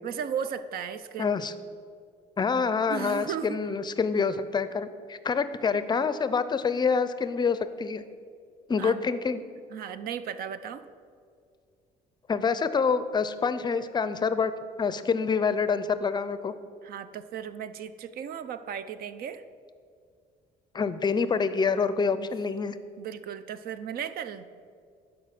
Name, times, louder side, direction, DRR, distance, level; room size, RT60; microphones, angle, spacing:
voice 1, 0.0-1.3 2.9-3.6 8.8-9.1 9.7-10.8 16.8-19.4 22.2-22.3 23.0-24.4, right 8 dB, 60° right, 13 dB, 0.5 m, -35 dB
voice 2, 1.2-1.5 2.4-8.0 8.7-9.4 12.3-14.5 14.8-16.5 20.7-22.8, left 5 dB, 25° left, 13 dB, 0.5 m, -26 dB
11.5 x 5.1 x 5.9 m, 2.2 s
cardioid pair, 110°, 17 cm